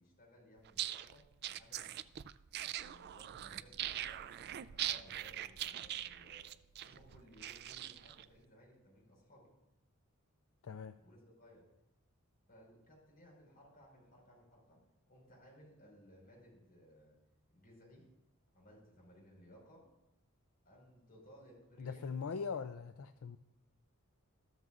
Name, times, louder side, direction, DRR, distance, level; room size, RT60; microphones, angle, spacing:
voice 1, 0.0-2.0 2.8-6.5 6.8-9.5 11.0-11.6 12.5-14.8 15.1-17.2 17.5-18.1 18.5-19.9 20.6-22.1, equal, 45° left, -2 dB, 4.9 m, -61 dB
sound 1, 0.6-8.2, right 12 dB, 50° right, 0.3 m, -42 dB
voice 2, 10.6-10.9 21.8-23.4, left 5 dB, 70° left, 10 dB, 0.4 m, -41 dB
13.5 x 13.5 x 2.5 m, 0.90 s
head